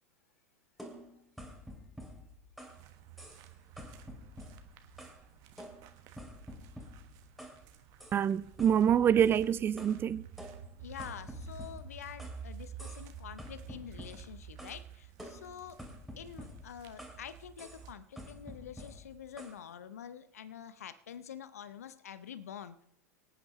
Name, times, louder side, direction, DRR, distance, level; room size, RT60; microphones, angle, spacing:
sound 1, 0.8-2.8 3.2-3.5 3.8-5.2 5.6-7.6 8.0-8.2 8.6-10.0 10.4-12.4 12.8-13.1 13.4-14.8 15.2-17.2 17.6-17.8 18.2-19.6, equal, ahead, 2.7 m, -49 dB
sound 2, 2.7-17.9, right 6 dB, 45° right, 1.3 m, -51 dB
voice 1, 8.1-10.2, right 9 dB, 25° right, 0.5 m, -26 dB
voice 2, 10.8-15.8 16.2-22.8, left 8 dB, 75° left, 0.7 m, -47 dB
24.5 x 8.8 x 3.1 m
hypercardioid pair, 95°, 8 cm